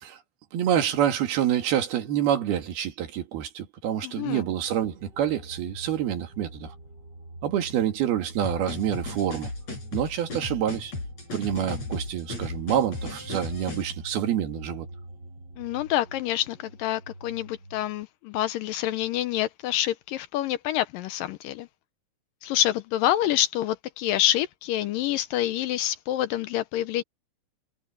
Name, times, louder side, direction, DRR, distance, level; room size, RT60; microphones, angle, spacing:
voice 1, 0.5-6.7 7.4-9.5 9.9-10.9 11.3-14.9, right 10 dB, 80° right, 3.9 m, -27 dB
voice 2, 4.0-4.4 15.6-21.7 22.4-27.0, left 13 dB, 75° left, 2.2 m, -27 dB
sound 1, 4.6-18.0, right 1 dB, 35° right, 2.3 m, -46 dB
sound 2, 8.4-13.8, left 3 dB, 45° left, 8.8 m, -36 dB
omnidirectional pair, 4.4 m